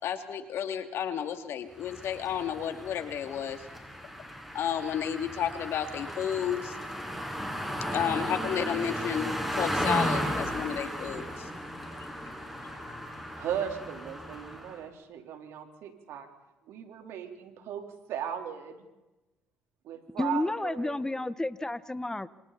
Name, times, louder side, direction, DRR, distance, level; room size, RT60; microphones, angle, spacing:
voice 1, 0.0-3.7 4.5-6.8 7.9-13.4, left 9 dB, 70° left, 6 dB, 2.7 m, -33 dB
sound 1, 1.8-14.8, equal, 5° right, 7.5 m, -35 dB
voice 2, 13.3-16.3 16.7-18.8 19.8-21.1, right 9 dB, 75° right, 4 dB, 4.0 m, -37 dB
voice 3, 20.2-22.3, left 2 dB, 15° left, 14 dB, 1.4 m, -31 dB
28.0 x 27.0 x 4.3 m, 1.0 s
supercardioid pair, 65°, 4 cm